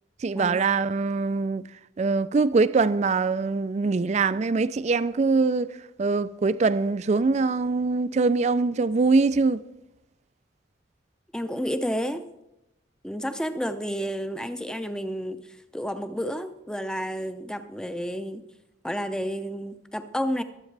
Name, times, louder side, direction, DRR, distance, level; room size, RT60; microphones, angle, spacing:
voice 1, 0.2-1.6 2.0-5.7 6.0-9.6, right 4 dB, 35° right, 0.3 m, -23 dB
voice 2, 11.3-12.3 13.0-18.4 18.8-20.4, equal, 5° left, 0.6 m, -31 dB
22.5 x 8.3 x 3.3 m
head